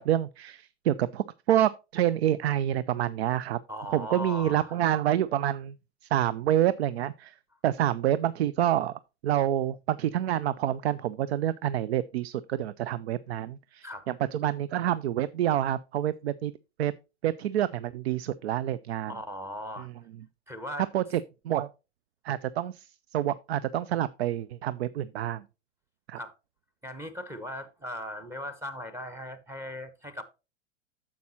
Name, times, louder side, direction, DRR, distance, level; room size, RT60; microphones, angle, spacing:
voice 1, 0.0-3.6 3.9-5.7 6.1-7.3 7.6-16.5 16.8-16.9 17.2-19.2 19.8-19.9 20.9-21.7 22.2-22.9 23.1-25.4 26.1-26.2, right 11 dB, 60° right, 0.5 m, -27 dB
voice 2, 3.7-4.8 13.8-14.1 19.1-19.9 20.5-20.9 26.2-26.3 26.8-30.2, left 1 dB, 5° right, 0.9 m, -38 dB
9.3 x 7.3 x 2.8 m
figure-of-eight pair, 95°, 36 cm